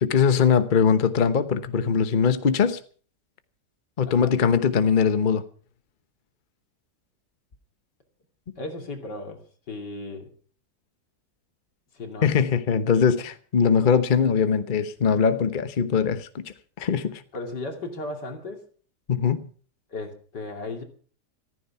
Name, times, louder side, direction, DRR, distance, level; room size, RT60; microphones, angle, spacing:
voice 1, 0.0-2.8 4.0-5.4 12.2-17.2 19.1-19.5, left 6 dB, 35° left, 1.0 m, -21 dB
voice 2, 4.0-4.3 8.6-10.3 11.9-12.3 17.3-18.6 19.9-20.8, left 2 dB, 85° left, 3.3 m, -35 dB
14.5 x 14.5 x 5.7 m
omnidirectional pair, 1.8 m